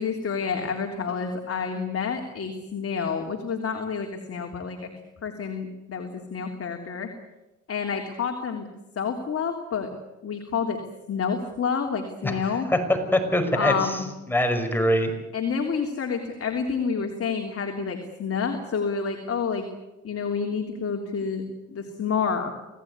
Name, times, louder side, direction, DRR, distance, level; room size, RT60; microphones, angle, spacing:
voice 1, 0.0-4.9 5.2-7.1 7.7-8.7 8.9-9.9 10.2-10.8 11.1-12.7 13.5-14.1 15.3-19.7 20.0-22.5, left 6 dB, 50° left, 3 dB, 3.4 m, -29 dB
voice 2, 12.7-14.0 14.3-15.1, left 1 dB, 5° left, 5 dB, 5.6 m, -23 dB
27.0 x 18.0 x 9.7 m, 1.0 s
cardioid pair, 90°, 30 cm